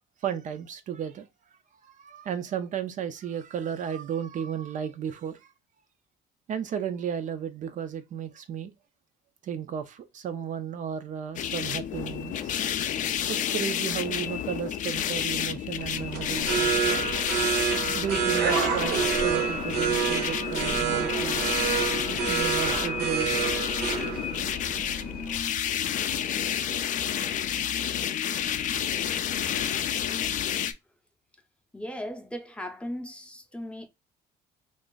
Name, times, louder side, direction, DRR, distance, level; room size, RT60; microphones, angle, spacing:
voice 1, 0.2-1.3 1.8-5.5 6.5-8.7 9.4-12.5 13.3-16.9 17.9-21.7 22.3-23.5, right 8 dB, 50° right, 0.4 m, -34 dB
sound 1, 11.4-30.7, left 9 dB, 50° left, 0.4 m, -30 dB
sound 2, 15.8-25.4, right 6 dB, 70° right, 0.8 m, -28 dB
voice 2, 31.7-33.9, equal, 5° left, 0.6 m, -37 dB
2.5 x 2.4 x 3.7 m
cardioid pair, 110°, 17 cm